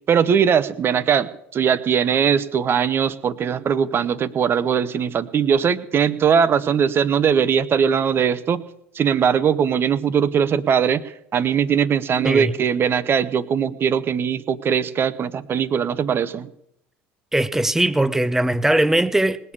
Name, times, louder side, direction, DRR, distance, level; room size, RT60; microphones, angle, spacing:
voice 1, 0.1-8.6 8.9-11.0 11.3-16.5, right 7 dB, 35° right, 1.0 m, -20 dB
voice 2, 17.3-19.5, right 1 dB, 5° right, 0.8 m, -20 dB
19.5 x 6.7 x 8.7 m
hypercardioid pair, 80°, 6 cm